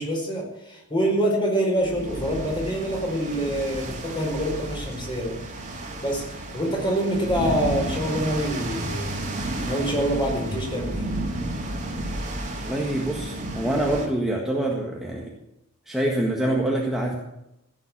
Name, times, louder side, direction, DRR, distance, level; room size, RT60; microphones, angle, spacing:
voice 1, 0.0-5.4 6.0-11.1, equal, 20° left, -1 dB, 4.9 m, -26 dB
sound 1, 1.8-14.1, right 1 dB, 35° right, 2.6 m, -32 dB
voice 2, 12.6-15.3 15.9-17.1, right 1 dB, ahead, -2 dB, 1.7 m, -25 dB
16.0 x 7.4 x 8.7 m, 0.87 s
head